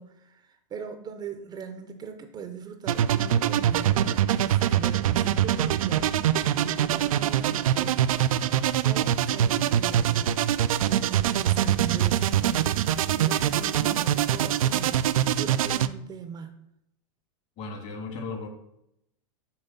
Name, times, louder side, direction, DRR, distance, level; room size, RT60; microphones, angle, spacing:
voice 1, 0.0-6.2 6.6-8.0 8.3-10.4 10.8-16.7, right 6 dB, 25° right, 7 dB, 0.6 m, -40 dB
sound 1, 2.9-15.9, right 11 dB, 90° right, 0.4 m, -24 dB
voice 2, 17.6-18.5, left 4 dB, 45° left, 4 dB, 1.7 m, -35 dB
6.9 x 3.4 x 5.6 m, 0.80 s
hypercardioid pair, 130°, 17 cm